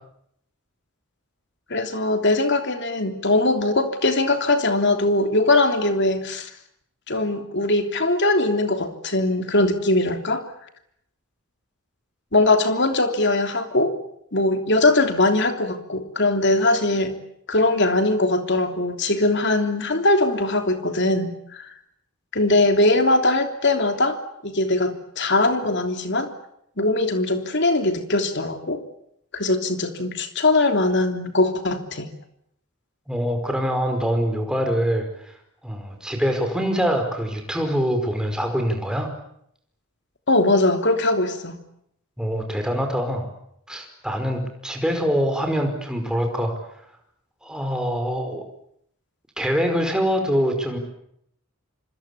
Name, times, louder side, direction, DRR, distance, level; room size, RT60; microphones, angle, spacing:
voice 1, 1.7-6.5 7.1-10.4 12.3-13.9 14.3-17.2 17.5-21.7 22.3-26.3 26.8-28.8 29.3-32.1 40.3-41.6, left 2 dB, 50° left, 6 dB, 3.2 m, -21 dB
voice 2, 33.1-35.3 35.6-39.1 42.2-43.3 43.7-46.5 47.4-48.4 49.4-50.8, equal, 5° right, 4 dB, 5.1 m, -24 dB
26.0 x 26.0 x 8.5 m, 0.74 s
head